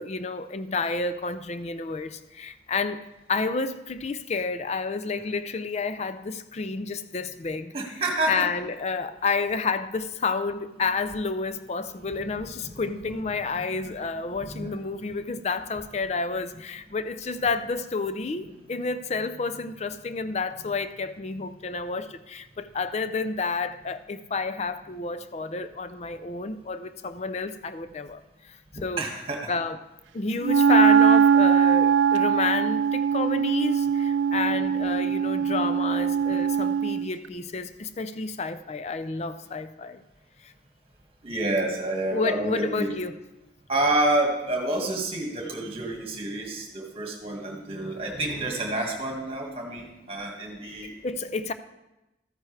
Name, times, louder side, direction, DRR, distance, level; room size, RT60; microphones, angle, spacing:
voice 1, 0.0-3.0 3.3-7.7 8.3-28.2 28.5-29.0 29.5-29.8 30.1-40.0 40.4-40.5 42.1-43.2 51.0-51.5, left 4 dB, 35° left, 0.4 m, -30 dB
voice 2, 7.7-8.5 12.0-13.3 13.6-14.1 14.4-14.8 18.4-18.5 28.7-29.5 41.2-43.0 43.7-50.9, right 1 dB, 30° right, 1.8 m, -29 dB
Wind instrument woodwind instrument, 30.4-37.1, right 7 dB, 85° right, 0.3 m, -21 dB
13.5 x 9.3 x 3.3 m
head